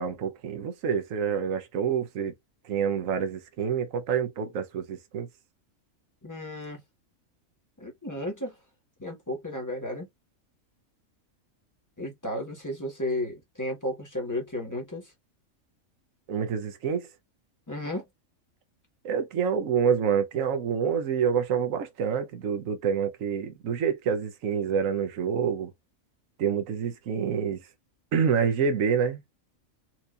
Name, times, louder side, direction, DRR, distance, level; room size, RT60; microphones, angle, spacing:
voice 1, 0.0-2.3 2.6-5.3 16.3-17.1 19.0-25.7 26.4-27.7 28.1-29.2, right 7 dB, 75° right, 1.2 m, -27 dB
voice 2, 6.2-6.8 7.8-8.5 9.0-10.1 12.0-15.0 17.7-18.0, left 1 dB, 15° left, 1.4 m, -33 dB
4.4 x 2.8 x 2.5 m
omnidirectional pair, 1.4 m